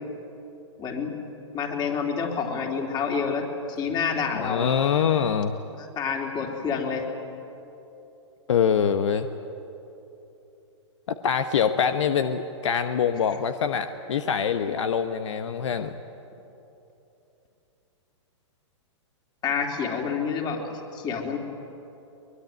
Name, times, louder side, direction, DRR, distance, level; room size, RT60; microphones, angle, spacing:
voice 1, 0.8-1.2 1.5-4.7 5.8-7.1 19.4-21.4, left 6 dB, 25° left, 2 dB, 3.5 m, -28 dB
voice 2, 4.3-5.5 8.5-9.3 11.1-15.9, left 7 dB, 70° left, 9 dB, 1.1 m, -24 dB
23.0 x 21.5 x 9.3 m, 2.9 s
hypercardioid pair, 120°, 16 cm